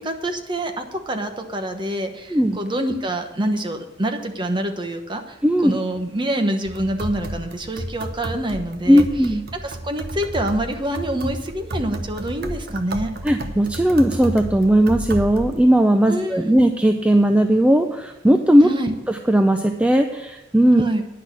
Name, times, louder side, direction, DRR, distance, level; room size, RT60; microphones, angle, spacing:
voice 1, 0.0-5.4 5.6-9.1 9.6-13.1 16.1-16.6 18.6-18.9 20.7-21.0, right 1 dB, 25° right, 5 dB, 1.1 m, -26 dB
voice 2, 5.4-5.8 8.9-9.4 13.2-18.7 19.1-20.8, equal, 5° right, 5 dB, 0.5 m, -17 dB
sound 1, 6.6-15.6, right 1 dB, 55° right, 0.9 m, -32 dB
10.0 x 6.2 x 8.2 m, 1.0 s
head